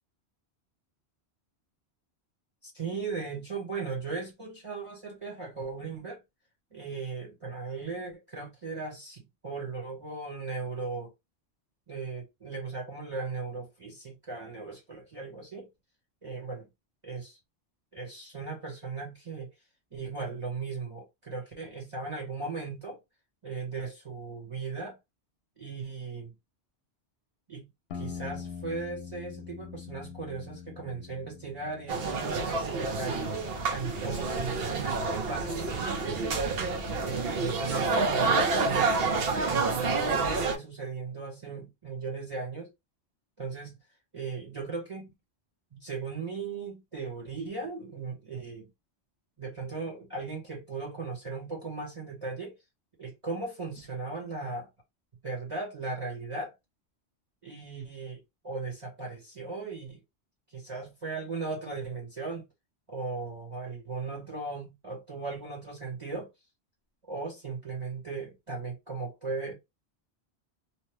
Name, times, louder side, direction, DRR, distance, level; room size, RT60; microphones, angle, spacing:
voice 1, 2.6-6.2 6.7-11.1 11.9-15.7 16.2-16.7 17.0-17.4 17.9-19.5 19.9-23.0 23.4-25.0 25.6-26.3 27.5-27.7 27.9-33.4 33.7-36.6 37.0-42.7 43.4-43.8 44.1-45.1 45.7-48.7 49.4-52.5 53.0-54.7 55.2-56.5 57.4-60.0 60.5-62.4 62.9-66.3 67.1-69.5, right 4 dB, 30° right, 1.0 m, -37 dB
sound 1, 27.9-32.6, left 7 dB, 65° left, 0.8 m, -43 dB
sound 2, 31.9-40.6, right 4 dB, 60° right, 0.9 m, -28 dB
2.9 x 2.2 x 3.2 m
omnidirectional pair, 1.1 m